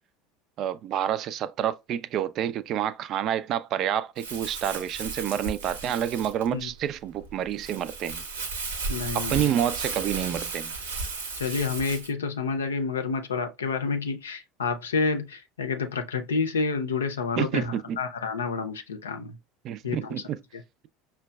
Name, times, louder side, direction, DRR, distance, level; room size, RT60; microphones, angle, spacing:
voice 1, 0.6-8.2 9.1-10.7 17.4-18.0 19.6-20.4, right 10 dB, 50° right, 0.4 m, -28 dB
Crumpling crinkling, 4.2-12.1, right 4 dB, 80° right, 0.9 m, -34 dB
voice 2, 8.9-9.5 11.4-19.4 19.8-20.2 20.5-20.6, left 4 dB, 80° left, 0.5 m, -29 dB
5.7 x 2.2 x 2.2 m
figure-of-eight pair, 70°, 0 cm